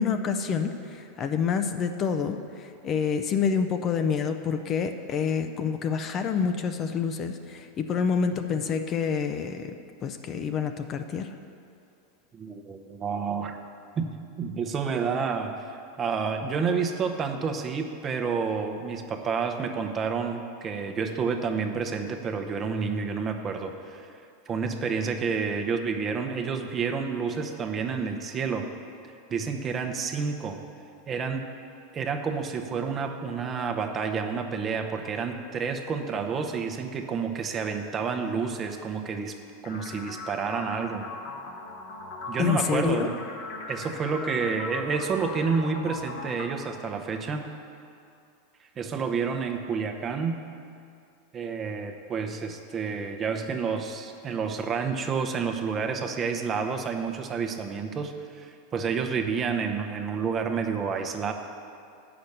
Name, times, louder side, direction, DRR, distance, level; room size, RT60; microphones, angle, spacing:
voice 1, 0.0-9.7 10.0-11.4 42.4-43.1, left 6 dB, 35° left, 7 dB, 0.5 m, -27 dB
voice 2, 12.3-13.6 14.0-15.7 16.0-24.1 24.5-28.7 29.3-30.6 31.1-31.5 31.9-39.3 39.6-41.0 42.3-43.2 43.7-47.4 48.8-50.4 51.3-61.3, right 5 dB, 30° right, 5 dB, 0.8 m, -29 dB
sound 1, 39.6-47.6, left 3 dB, 60° left, 1.0 m, -39 dB
8.1 x 6.0 x 6.6 m, 2.4 s
supercardioid pair, 120°, 0 cm